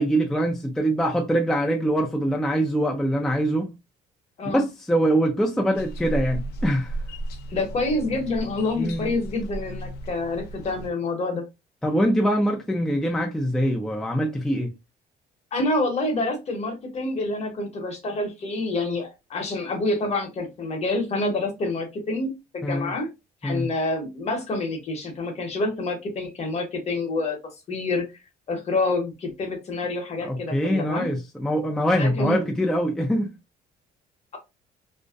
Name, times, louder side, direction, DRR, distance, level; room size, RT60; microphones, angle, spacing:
voice 1, 0.0-3.7 4.5-6.9 8.8-9.1 11.8-14.7 22.6-22.9 23.4-23.7 30.2-33.3, equal, 5° left, 0.4 m, -23 dB
sound 1, 5.7-10.9, right 2 dB, 70° left, 0.5 m, -34 dB
voice 2, 7.5-11.5 15.5-23.1 23.4-27.4 27.7-28.0 28.5-31.1 32.0-32.5, left 2 dB, 40° left, 0.9 m, -27 dB
2.6 x 2.1 x 2.3 m
cardioid pair, 110°, 17 cm